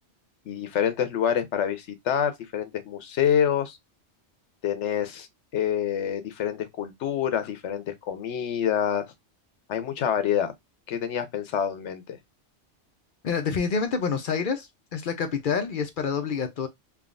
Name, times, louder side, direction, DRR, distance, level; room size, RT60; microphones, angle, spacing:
voice 1, 0.5-3.8 4.6-5.3 5.5-9.1 9.7-10.5 10.9-12.2, left 9 dB, 80° left, 1.0 m, -27 dB
voice 2, 13.2-16.7, left 6 dB, 55° left, 0.6 m, -27 dB
3.5 x 2.3 x 2.3 m
omnidirectional pair, 1.2 m